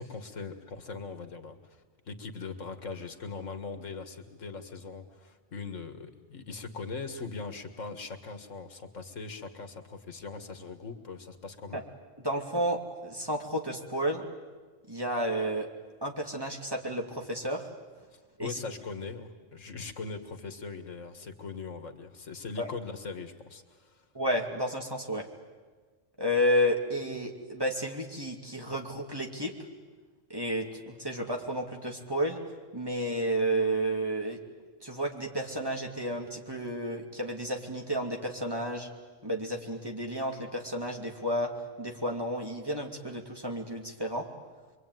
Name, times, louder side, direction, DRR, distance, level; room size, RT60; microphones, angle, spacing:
voice 1, 0.0-1.8 2.1-11.8 18.4-24.0, left 4 dB, 85° left, 8 dB, 2.1 m, -40 dB
voice 2, 12.2-14.3 14.9-15.7 16.0-17.7 18.4-18.6 22.6-22.7 24.1-25.3 26.2-29.5 30.3-32.4 32.7-34.4 34.8-38.9 39.2-44.3, equal, 20° right, 1 dB, 2.6 m, -31 dB
26.0 x 23.5 x 9.3 m, 1.4 s
omnidirectional pair, 1.3 m